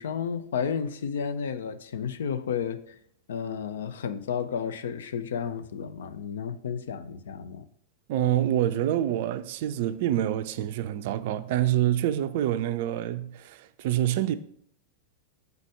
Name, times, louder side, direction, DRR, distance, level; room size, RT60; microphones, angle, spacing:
voice 1, 0.0-2.9 3.3-7.6, left 7 dB, 60° left, 0.4 m, -32 dB
voice 2, 8.1-14.3, right 12 dB, 50° right, 0.4 m, -26 dB
6.8 x 4.1 x 4.6 m
figure-of-eight pair, 90°, 0 cm